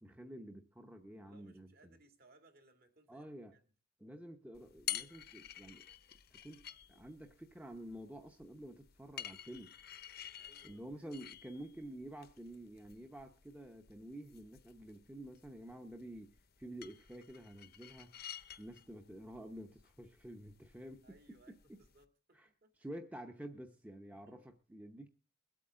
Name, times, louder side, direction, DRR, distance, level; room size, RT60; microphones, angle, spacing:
voice 1, 0.0-2.0 3.1-3.6 4.0-5.9 6.3-9.7 10.6-18.2 18.6-21.2 21.5-21.6 22.3-22.5 22.8-25.1, right 1 dB, 5° right, 0.8 m, -50 dB
voice 2, 1.2-3.7 10.4-11.1 21.0-23.0 24.1-24.5, right 2 dB, 45° right, 2.3 m, -67 dB
sound 1, 4.5-22.0, left 11 dB, 50° left, 0.7 m, -50 dB
22.5 x 8.4 x 3.7 m
head